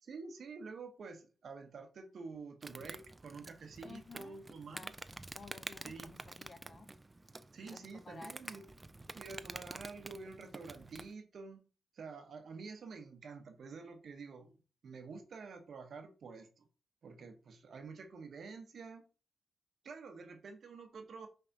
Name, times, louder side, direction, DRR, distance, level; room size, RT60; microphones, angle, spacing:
voice 1, 0.0-4.9 5.8-6.1 7.5-8.7 9.1-11.7 11.9-14.6 14.8-16.7 17.0-19.0 19.8-21.3, right 4 dB, 65° right, 0.8 m, -49 dB
Insect, 2.6-11.1, right 2 dB, 25° right, 0.4 m, -49 dB
voice 2, 3.8-4.4 4.7-6.9 7.7-8.7, left 4 dB, 50° left, 0.7 m, -54 dB
5.7 x 3.5 x 2.7 m
supercardioid pair, 45°, 0 cm